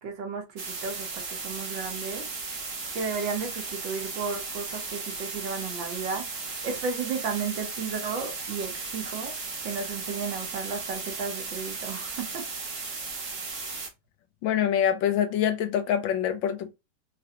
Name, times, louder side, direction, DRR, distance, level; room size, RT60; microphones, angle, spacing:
voice 1, 0.0-2.3 2.9-6.3 6.6-9.3 9.6-12.4, right 5 dB, 80° right, 1.9 m, -33 dB
sound 1, 0.6-13.9, right 4 dB, 45° right, 1.4 m, -36 dB
voice 2, 14.4-16.7, left 9 dB, 85° left, 1.5 m, -25 dB
4.7 x 3.4 x 2.9 m
omnidirectional pair, 2.0 m